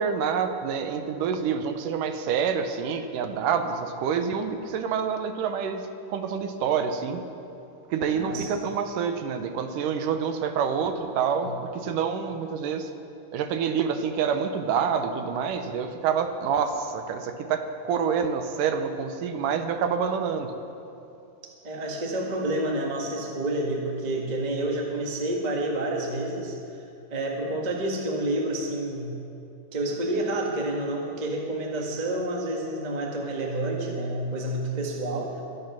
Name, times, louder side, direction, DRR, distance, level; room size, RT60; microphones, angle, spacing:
voice 1, 0.0-7.2 7.9-12.9 13.3-20.5, right 6 dB, 80° right, 7 dB, 2.4 m, -27 dB
voice 2, 8.1-8.5 11.4-11.5 21.6-26.6 27.1-29.2 29.7-35.4, right 1 dB, 25° right, 0 dB, 0.9 m, -29 dB
23.0 x 8.6 x 5.9 m, 2.7 s
omnidirectional pair, 3.7 m